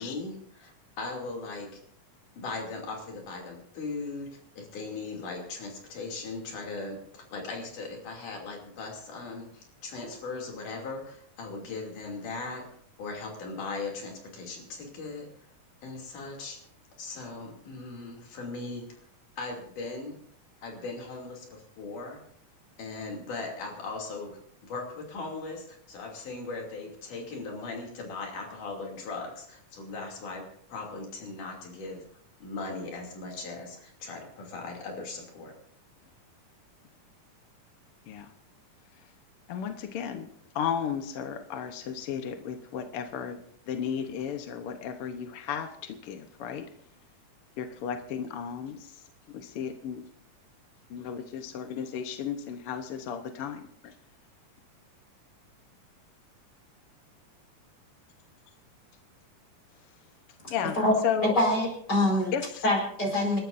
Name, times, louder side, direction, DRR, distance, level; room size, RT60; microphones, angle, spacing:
voice 1, 0.0-1.8 2.4-12.7 13.0-15.3 15.8-16.6 17.0-18.9 19.4-20.2 20.6-22.2 22.8-32.0 32.4-35.5, left 3 dB, 80° left, 0 dB, 4.3 m, -38 dB
voice 2, 39.5-40.3 40.5-43.4 43.7-46.6 47.6-48.9 49.3-50.0 50.9-53.9 60.5-60.8 61.0-61.3 62.3-62.6, left 8 dB, 65° left, 6 dB, 1.5 m, -34 dB
voice 3, 61.2-62.3 62.6-63.4, left 1 dB, 30° left, 0 dB, 5.2 m, -24 dB
28.5 x 12.5 x 2.6 m, 0.63 s
omnidirectional pair, 3.6 m